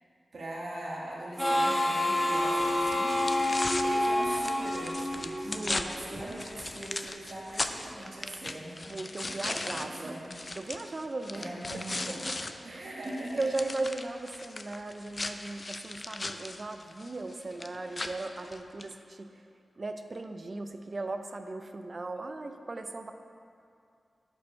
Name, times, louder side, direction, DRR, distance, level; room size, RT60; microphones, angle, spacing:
voice 1, 0.3-3.1 3.8-10.3 11.3-12.3 12.6-13.5, right 1 dB, 65° right, -6 dB, 1.5 m, -41 dB
Harmonica, 1.4-5.8, left 1 dB, 15° left, 1.1 m, -28 dB
sound 1, 2.3-12.5 12.8-18.9, left 2 dB, 35° left, 0.3 m, -38 dB
voice 2, 5.4-6.3 8.9-10.2 10.6-11.5 12.1-12.9 13.4-19.3 19.8-23.1, right 2 dB, 40° right, 7 dB, 0.4 m, -37 dB
6.3 x 5.1 x 5.6 m, 2.5 s
wide cardioid pair, 95°, 0 cm